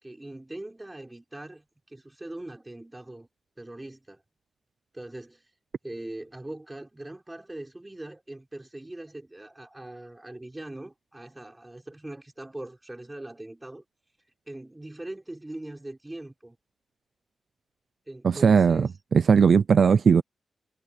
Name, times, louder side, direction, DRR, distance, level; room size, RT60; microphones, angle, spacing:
voice 1, 0.0-3.3 3.6-4.2 4.9-5.4 5.8-13.8 14.5-16.6 18.1-18.9, right 1 dB, 15° right, 5.5 m, -41 dB
voice 2, 18.2-20.2, right 6 dB, 60° right, 0.6 m, -19 dB
wide cardioid pair, 110°, 0 cm